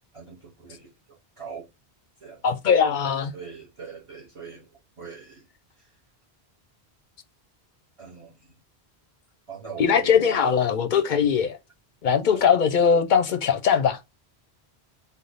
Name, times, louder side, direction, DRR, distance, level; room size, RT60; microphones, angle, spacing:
voice 1, 0.1-1.7 2.2-2.4 3.3-4.7 5.0-5.4 8.0-8.3 9.5-10.6 12.3-12.5, right 6 dB, 35° right, 0.7 m, -41 dB
voice 2, 2.4-3.3 9.8-11.6 12.0-14.0, left 7 dB, 60° left, 0.6 m, -20 dB
3.3 x 2.0 x 3.9 m
omnidirectional pair, 1.1 m